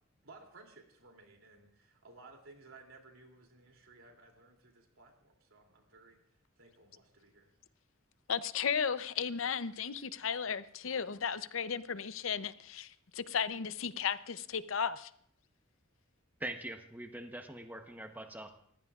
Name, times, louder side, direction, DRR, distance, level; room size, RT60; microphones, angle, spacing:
voice 1, 0.2-7.5, right 3 dB, 85° right, 2 dB, 2.9 m, -58 dB
voice 2, 8.3-15.1, left 7 dB, 75° left, 13 dB, 0.6 m, -35 dB
voice 3, 16.4-18.5, right 1 dB, 10° right, 5 dB, 0.9 m, -43 dB
30.0 x 15.0 x 2.4 m, 0.64 s
head